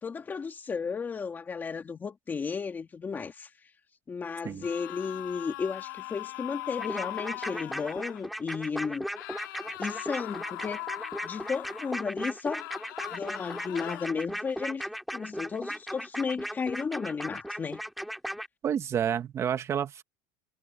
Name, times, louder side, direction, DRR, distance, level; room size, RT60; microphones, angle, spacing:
voice 1, 0.0-3.7 4.1-9.1 9.8-10.8 11.2-12.7 13.1-17.8, left 5 dB, 15° left, 2.5 m, -34 dB
sound 1, 4.6-8.3 9.1-12.1 12.5-14.1, left 19 dB, 85° left, 4.0 m, -40 dB
sound 2, 6.8-18.5, equal, ahead, 2.3 m, -37 dB
voice 2, 18.6-20.0, right 8 dB, 25° right, 1.7 m, -29 dB
supercardioid pair, 150°, 11 cm